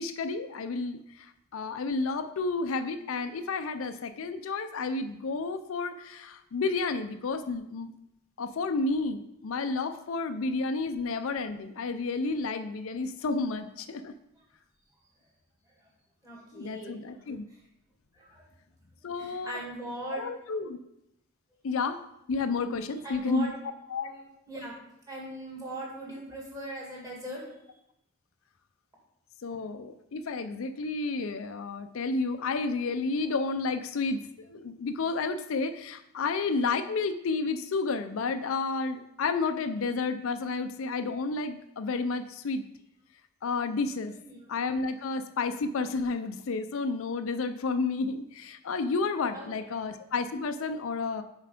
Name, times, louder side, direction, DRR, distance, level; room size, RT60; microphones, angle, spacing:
voice 1, 0.0-7.9 8.4-14.1 16.5-17.4 19.0-19.6 20.1-20.8 21.6-22.0 22.3-23.5 23.9-24.1 29.4-42.6 43.4-44.1 44.5-51.2, left 4 dB, 70° left, 9 dB, 0.4 m, -31 dB
voice 2, 16.2-17.0 17.5-17.6 18.1-18.5 19.0-20.2 23.0-23.5 23.9-24.7 25.1-27.4 44.0-44.5 49.3-49.8, right 1 dB, 15° right, -4 dB, 2.3 m, -40 dB
6.7 x 4.5 x 5.0 m, 0.82 s
head